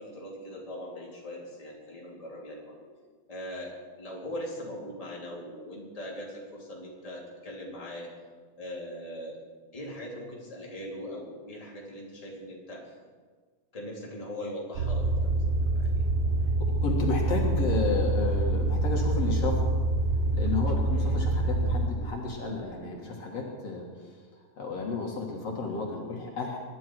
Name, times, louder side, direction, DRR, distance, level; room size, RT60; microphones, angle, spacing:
voice 1, 0.0-2.8 3.3-8.1 8.6-9.4 9.7-12.9 13.7-15.4 15.7-15.9 20.9-21.2, equal, 10° left, -3 dB, 2.8 m, -40 dB
sound 1, 14.7-21.9, right 2 dB, 75° right, 0.8 m, -26 dB
voice 2, 16.8-19.7 20.3-26.6, left 4 dB, 60° left, -1 dB, 2.9 m, -32 dB
23.5 x 11.0 x 4.6 m, 1.5 s
omnidirectional pair, 3.3 m